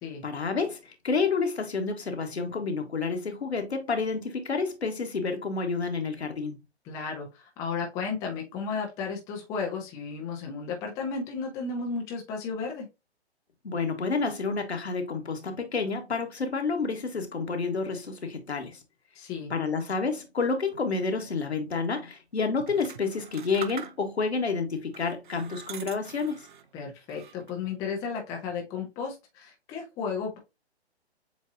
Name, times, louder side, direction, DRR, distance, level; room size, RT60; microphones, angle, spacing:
voice 1, 0.2-6.6 13.6-18.8 19.5-26.5, left 4 dB, 70° left, 1.4 m, -29 dB
voice 2, 6.8-12.9 19.1-19.5 26.7-30.4, left 5 dB, 10° left, 0.6 m, -34 dB
sound 1, 22.6-24.3 24.9-26.7 27.1-27.7, right 7 dB, 45° right, 0.6 m, -44 dB
7.4 x 2.7 x 2.6 m
figure-of-eight pair, 130°, 33 cm